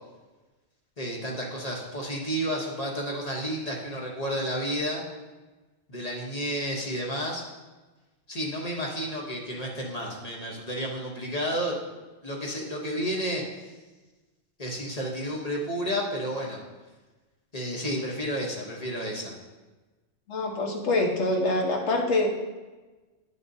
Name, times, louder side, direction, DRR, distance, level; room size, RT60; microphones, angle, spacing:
voice 1, 1.0-5.0 5.9-7.4 8.3-11.9 12.2-13.7 14.6-16.6 17.5-19.3, equal, 35° left, -2 dB, 1.2 m, -31 dB
voice 2, 20.3-22.3, left 2 dB, 75° left, 1 dB, 1.4 m, -25 dB
9.3 x 6.6 x 2.7 m, 1.2 s
omnidirectional pair, 1.2 m